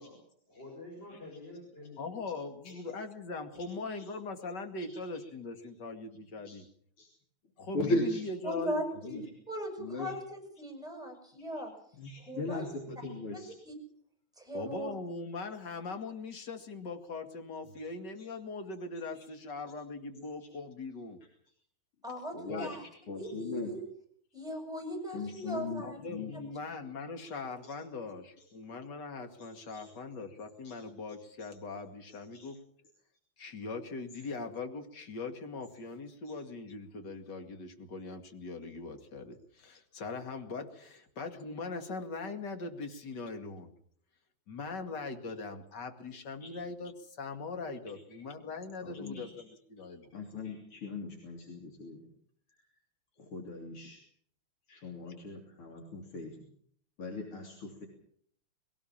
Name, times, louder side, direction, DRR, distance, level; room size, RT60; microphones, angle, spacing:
voice 1, 0.0-2.2, left 2 dB, 25° left, 0 dB, 6.3 m, -49 dB
voice 2, 2.0-6.7 7.6-8.8 14.5-21.2 22.5-22.7 25.8-32.6 33.4-43.7 44.5-50.1, left 3 dB, 55° left, 6 dB, 2.8 m, -41 dB
voice 3, 6.2-6.6 7.0-7.1 7.7-8.2 9.0-9.2 9.8-10.1 12.0-13.5 17.7-17.8 18.2-18.3 22.3-22.8 23.1-23.7 25.1-26.3 27.2-27.3 27.6-27.7 29.4-29.9 30.6-30.7 31.4-31.5 32.1-32.5 36.3-36.4 46.4-46.5 48.8-49.3 49.8-49.9 50.1-52.1 53.2-54.0 54.7-56.4 57.0-57.9, left 2 dB, 85° left, 1 dB, 4.1 m, -38 dB
voice 4, 8.4-11.7 12.2-12.7 13.6-13.8 14.4-15.0 22.0-22.8 23.1-23.8 24.3-26.0, equal, ahead, 4 dB, 7.3 m, -39 dB
21.5 x 17.5 x 7.4 m, 0.63 s
omnidirectional pair, 2.4 m